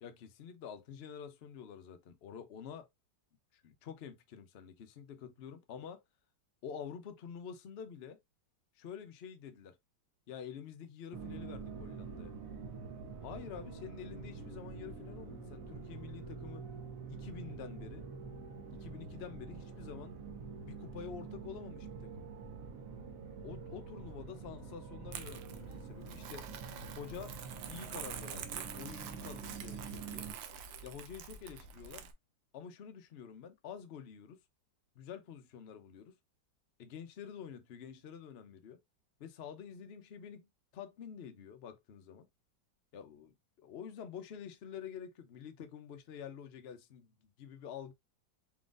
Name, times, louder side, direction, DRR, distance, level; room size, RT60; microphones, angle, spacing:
voice 1, 0.0-2.9 3.5-6.0 6.6-8.2 8.8-9.8 10.3-12.3 13.2-16.6 17.1-18.1 18.7-20.1 20.6-22.1 23.4-26.5 26.9-27.3 27.7-30.3 30.8-32.0 32.5-34.4 34.9-36.1 36.8-38.8 39.2-40.5 40.7-42.3 42.9-43.3 43.6-47.9, left 7 dB, 80° left, 0.5 m, -48 dB
sound 1, 11.1-30.3, right 5 dB, 55° right, 1.1 m, -46 dB
Crumpling crinkling, 25.1-32.1, right 8 dB, 80° right, 1.4 m, -47 dB
4.3 x 3.8 x 2.4 m
omnidirectional pair, 2.1 m